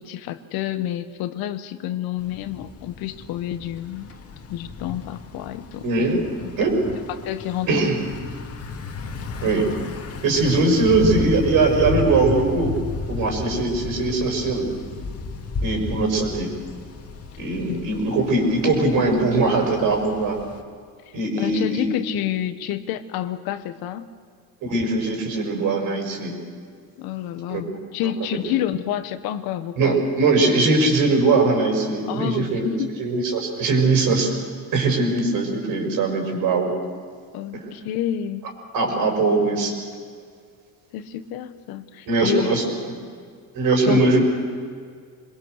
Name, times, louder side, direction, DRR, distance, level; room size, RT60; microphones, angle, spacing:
voice 1, 0.0-4.1 4.5-5.9 6.4-6.5 6.9-7.9 17.7-17.8 21.1-24.1 27.0-30.0 32.1-33.0 37.3-38.5 40.9-42.6 43.9-44.1, left 11 dB, 85° left, 10 dB, 1.3 m, -29 dB
Thunder / Bicycle, 2.2-20.6, left 3 dB, 45° left, 2.0 m, -33 dB
voice 2, 5.8-6.3 6.6-6.7 7.7-8.0 9.4-9.7 10.2-12.7 13.1-14.6 15.6-16.5 17.4-20.4 21.1-21.9 24.6-26.3 27.5-27.6 28.0-28.1 29.8-32.7 33.0-34.3 34.7-36.7 38.7-39.7 42.1-42.9 43.5-44.2, right 3 dB, 65° right, 2 dB, 5.8 m, -21 dB
25.0 x 21.5 x 6.6 m, 2.1 s
cardioid pair, 125°, 35 cm